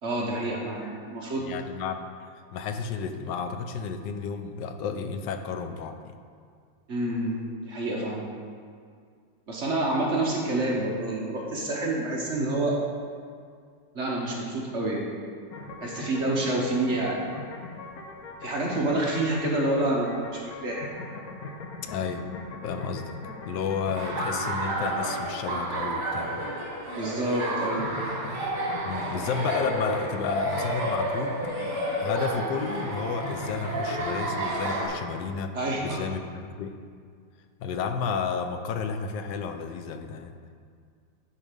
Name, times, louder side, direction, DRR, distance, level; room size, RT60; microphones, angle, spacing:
voice 1, 0.0-1.5 6.9-7.4 7.7-8.2 9.5-12.7 13.9-15.1 15.8-17.2 18.4-20.9 27.0-27.9 35.5-36.0, right 2 dB, 45° right, -2 dB, 1.2 m, -28 dB
voice 2, 1.4-2.1 2.5-6.1 21.9-22.3 22.6-23.1 23.5-26.5 28.8-31.4 32.0-35.6 35.8-36.8 37.6-40.4, left 6 dB, 80° left, 7 dB, 1.3 m, -32 dB
sound 1, 15.5-34.9, left 3 dB, 60° left, 1.3 m, -41 dB
Laughter, 24.0-34.9, right 1 dB, 70° right, 2.3 m, -31 dB
9.6 x 4.7 x 5.2 m, 2.1 s
omnidirectional pair, 1.9 m